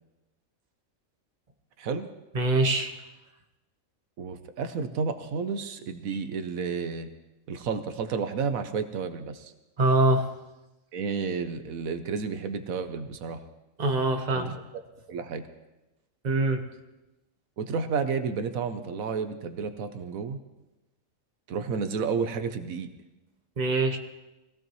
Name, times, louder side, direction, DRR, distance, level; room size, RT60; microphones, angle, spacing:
voice 1, 2.3-2.9 9.8-10.3 13.8-14.5 16.2-16.6 23.6-24.0, right 2 dB, 35° right, 4 dB, 1.2 m, -23 dB
voice 2, 4.2-7.1 7.5-9.5 10.9-13.4 14.3-14.6 15.1-15.4 17.6-20.4 21.5-22.9, right 5 dB, 85° right, 9 dB, 1.3 m, -31 dB
22.0 x 16.5 x 3.1 m, 1.0 s
omnidirectional pair, 1.4 m